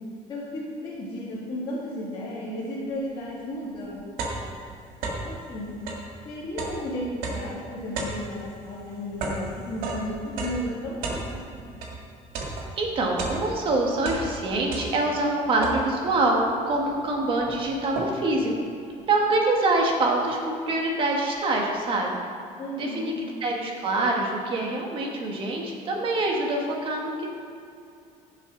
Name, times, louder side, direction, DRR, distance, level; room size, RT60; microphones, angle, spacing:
voice 1, 0.3-4.5 5.2-5.7 6.2-11.6 22.6-23.1, left 1 dB, 35° left, -9 dB, 2.3 m, -34 dB
sound 1, 3.3-3.4 3.7-5.4 5.8-12.0 12.3-13.7 14.0-15.2 15.6-16.2 16.8-16.9 17.1-18.4, right 3 dB, 85° right, 1.9 m, -34 dB
voice 2, 12.8-18.5 19.1-22.2 22.7-23.1 23.4-27.3, right 2 dB, 35° right, 0 dB, 1.6 m, -25 dB
15.5 x 7.4 x 3.9 m, 2.5 s
cardioid pair, 175°, 15 cm